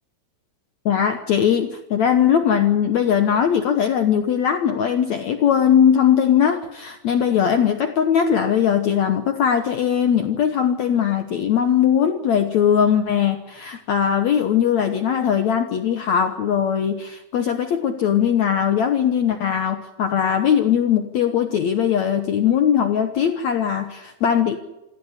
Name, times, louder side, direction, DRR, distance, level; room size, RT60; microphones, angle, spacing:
voice 1, 0.8-24.6, left 8 dB, 75° left, 6 dB, 1.6 m, -20 dB
27.0 x 13.0 x 9.8 m, 1.0 s
omnidirectional pair, 4.7 m